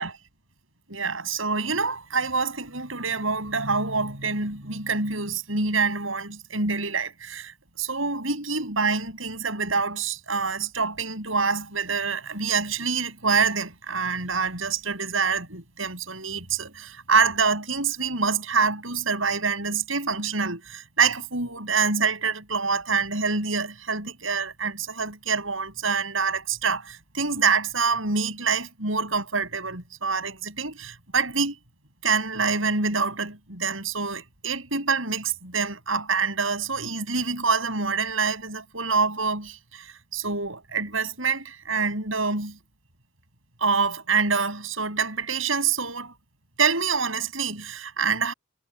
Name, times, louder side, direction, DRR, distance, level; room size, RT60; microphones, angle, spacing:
voice 1, 0.9-7.5 7.8-31.5 32.0-39.9 40.1-42.6 43.6-46.2 46.6-48.3, right 5 dB, 80° right, 7.8 m, -26 dB
head